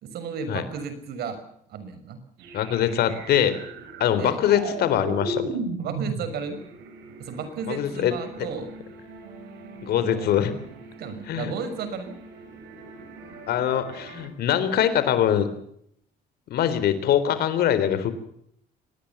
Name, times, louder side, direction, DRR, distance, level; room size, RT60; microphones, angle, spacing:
voice 1, 0.0-1.4 1.7-2.2 4.2-4.4 5.8-6.6 7.2-8.7 9.9-10.3 11.0-12.1, right 5 dB, 70° right, 10 dB, 6.0 m, -33 dB
sound 1, 2.4-14.3, right 3 dB, 85° right, 5.8 m, -38 dB
voice 2, 2.5-3.6 4.0-5.5 7.7-8.5 9.8-10.5 11.3-11.5 13.5-15.5 16.5-18.1, left 10 dB, 70° left, 12 dB, 3.8 m, -23 dB
24.5 x 19.5 x 7.3 m, 0.71 s
cardioid pair, 110°, 17 cm